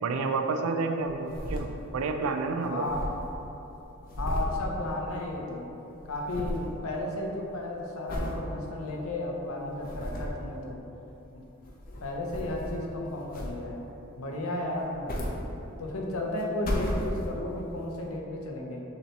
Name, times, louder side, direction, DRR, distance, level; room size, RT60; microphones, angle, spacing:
voice 1, 0.0-1.7 1.9-2.8, right 4 dB, 80° right, 6 dB, 0.4 m, -29 dB
sound 1, 1.0-2.2 2.4-2.5 2.7-5.5 5.7-6.7 7.2-7.5 8.1-8.4 9.0-9.1 9.6-10.5 11.5-12.9 13.3-13.9 14.7-16.0 16.4-17.6 18.2-18.3, equal, 45° left, 0.6 m, -35 dB
voice 2, 2.7-3.0 4.2-5.7 6.1-10.8 11.3-11.4 12.0-13.8 14.2-15.3 15.8-18.8, left 1 dB, 80° left, 0 dB, 0.7 m, -33 dB
6.5 x 2.9 x 2.8 m, 3.0 s
head